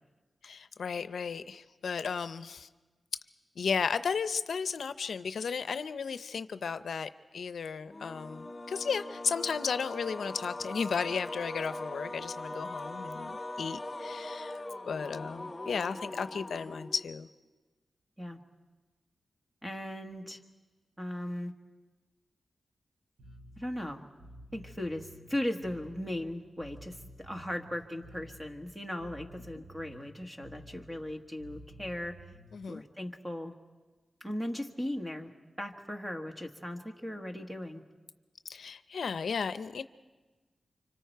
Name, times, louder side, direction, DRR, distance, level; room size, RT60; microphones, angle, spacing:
voice 1, 0.4-2.7 3.6-17.3 32.5-32.8 38.5-39.8, left 6 dB, 80° left, 12 dB, 0.6 m, -34 dB
sound 1, 7.9-17.2, left 2 dB, 20° left, 4.1 m, -41 dB
voice 2, 19.6-20.4 21.0-21.5 23.6-24.0 24.5-32.2 32.7-33.5 34.2-35.3 35.6-37.8, left 1 dB, 10° right, 4 dB, 1.5 m, -37 dB
Bass guitar, 23.2-32.7, right 1 dB, 70° right, 2.6 m, -52 dB
30.0 x 25.5 x 4.6 m, 1.3 s
wide cardioid pair, 165°, 0 cm